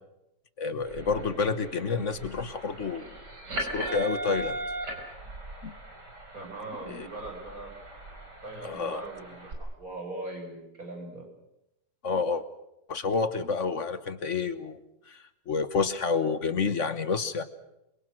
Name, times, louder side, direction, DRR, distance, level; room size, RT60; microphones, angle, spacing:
voice 1, 0.6-3.0 3.6-4.6 5.6-5.8 6.9-7.1 8.6-9.0 12.0-12.4 12.9-14.8 15.1-17.4, left 5 dB, 50° left, 12 dB, 1.3 m, -29 dB
sound 1, 0.8-9.5, right 1 dB, 70° right, 5.7 m, -39 dB
voice 2, 6.3-7.7 8.4-11.3, right 2 dB, 50° right, 2 dB, 6.7 m, -40 dB
27.5 x 23.0 x 6.4 m, 0.89 s
omnidirectional pair, 1.9 m